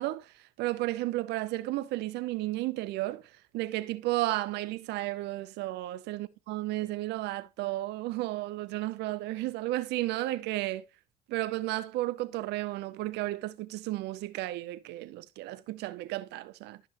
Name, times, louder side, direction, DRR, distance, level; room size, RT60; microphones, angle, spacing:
voice 1, 0.0-10.8 11.3-16.8, right 17 dB, 85° right, 0.8 m, -33 dB
15.0 x 5.5 x 3.0 m
cardioid pair, 110°, 17 cm